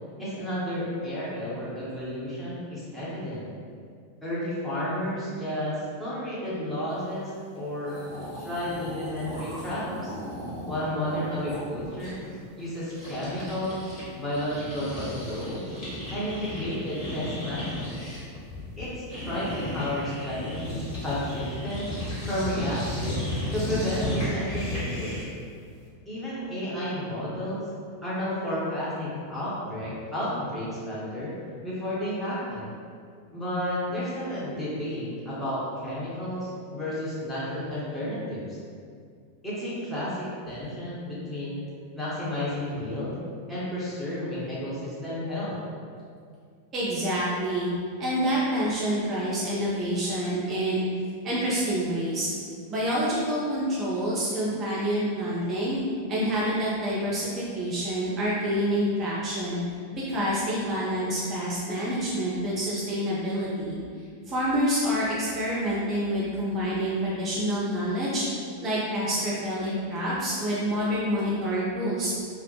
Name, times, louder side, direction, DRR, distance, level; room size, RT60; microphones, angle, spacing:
voice 1, 0.2-3.5 4.2-8.0 8.4-10.1 10.7-12.2 12.6-13.9 14.2-15.6 16.1-18.1 18.8-18.9 19.2-21.9 22.2-23.2 23.5-25.2 26.1-27.6 28.0-31.3 31.6-32.7 33.3-38.6 39.4-41.6 41.9-43.2 43.5-45.6, left 1 dB, 5° left, -10 dB, 0.8 m, -32 dB
sound 1, 7.6-7.7 7.8-14.0 14.3-25.4, left 1 dB, 35° left, 1.2 m, -35 dB
voice 2, 46.7-47.7 48.0-50.9 51.2-52.3 52.7-55.8 56.1-59.6 59.9-63.8 64.3-68.2 68.6-72.1, equal, 30° right, -8 dB, 0.4 m, -27 dB
2.3 x 2.0 x 2.8 m, 2.2 s
figure-of-eight pair, 90°, 0 cm